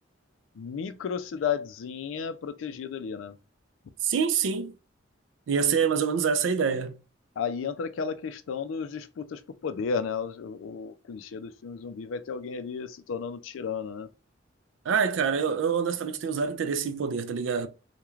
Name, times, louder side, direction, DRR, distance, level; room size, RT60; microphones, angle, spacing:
voice 1, 0.6-3.3 7.4-14.1, left 6 dB, 85° left, 0.4 m, -33 dB
voice 2, 4.0-4.7 5.5-7.0 14.9-17.7, right 6 dB, 75° right, 0.4 m, -26 dB
2.3 x 2.2 x 3.0 m
head